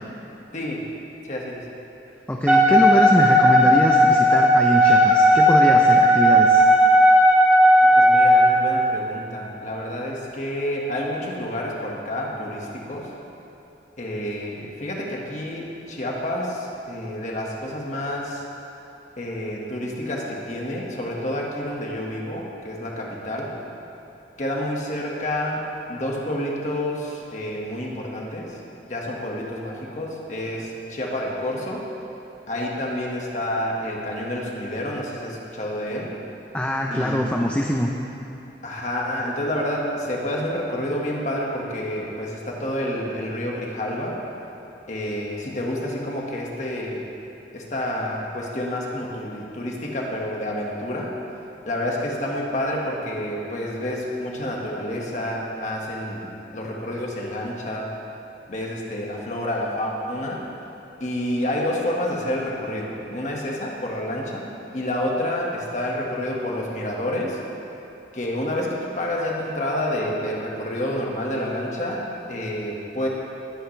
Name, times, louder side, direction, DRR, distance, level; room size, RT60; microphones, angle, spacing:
voice 1, 0.5-0.8 1.3-1.6 7.8-13.1 14.0-18.4 19.2-23.5 24.4-31.8 32.5-36.1 36.9-37.3 38.6-44.2 44.9-47.0 47.5-51.1 51.6-57.9 58.5-60.4 61.0-64.5 64.7-67.4 68.1-73.1, left 1 dB, 45° left, -2 dB, 1.7 m, -29 dB
voice 2, 2.3-6.6 36.5-37.9, equal, 10° left, 0 dB, 0.5 m, -23 dB
Wind instrument woodwind instrument, 2.5-8.5, equal, 10° right, 1.7 m, -15 dB
20.0 x 9.2 x 3.3 m, 2.9 s
head